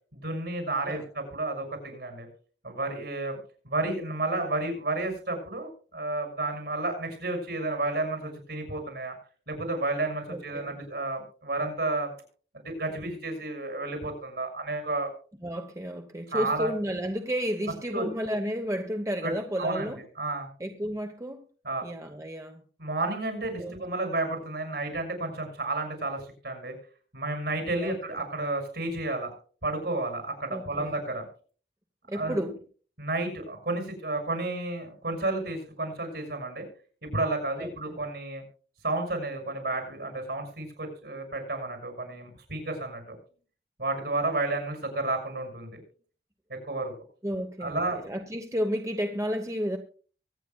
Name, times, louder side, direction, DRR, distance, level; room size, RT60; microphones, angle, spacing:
voice 1, 0.1-2.3 2.6-3.4 3.6-9.1 9.5-12.1 12.5-15.1 16.3-16.7 17.9-18.1 19.2-19.9 20.2-20.5 21.6-21.8 22.8-26.7 27.1-29.3 29.6-31.3 32.1-32.4 33.0-36.7 37.0-38.4 38.8-43.2 43.8-45.8 46.5-46.9 47.6-48.0, right 2 dB, 70° right, 5 dB, 6.6 m, -31 dB
voice 2, 10.3-10.8 15.4-20.0 20.6-21.4 21.8-22.6 23.6-23.8 27.8-28.2 30.5-31.0 32.1-32.6 37.6-38.0 47.2-49.8, equal, 15° right, 5 dB, 1.0 m, -32 dB
24.0 x 9.3 x 2.3 m, 0.40 s
head